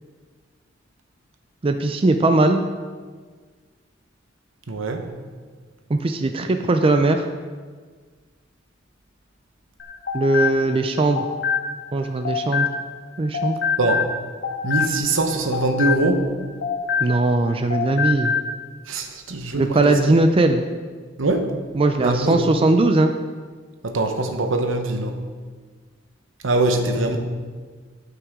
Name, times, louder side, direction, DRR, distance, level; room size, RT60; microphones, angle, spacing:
voice 1, 1.6-2.6 5.9-7.3 10.1-11.2 11.9-12.7 13.2-13.6 17.0-18.4 19.5-20.7 21.7-23.1, right 2 dB, 30° right, 6 dB, 0.4 m, -19 dB
voice 2, 4.7-5.0 13.8-14.0 14.6-16.3 18.9-19.9 21.2-21.5 22.0-22.4 23.8-25.2 26.4-27.2, right 2 dB, 80° right, 5 dB, 1.0 m, -22 dB
sound 1, 9.8-13.1 13.3-17.4 17.7-18.5, left 6 dB, 55° left, 1.0 m, -26 dB
13.5 x 5.8 x 3.6 m, 1.5 s
head